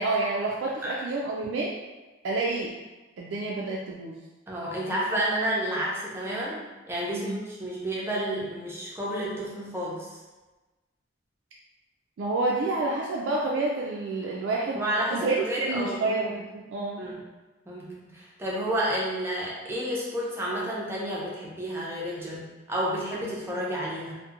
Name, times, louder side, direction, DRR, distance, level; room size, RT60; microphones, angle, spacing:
voice 1, 0.0-1.8 2.2-2.7 3.2-4.1 7.1-7.4 12.2-14.8 15.1-16.4 16.7-17.1, right 3 dB, 80° right, -4 dB, 0.3 m, -28 dB
voice 2, 4.5-10.2 14.7-16.2 17.0-17.2 17.7-24.1, right 1 dB, 10° right, -6 dB, 0.5 m, -31 dB
2.7 x 2.1 x 2.4 m, 1.2 s
head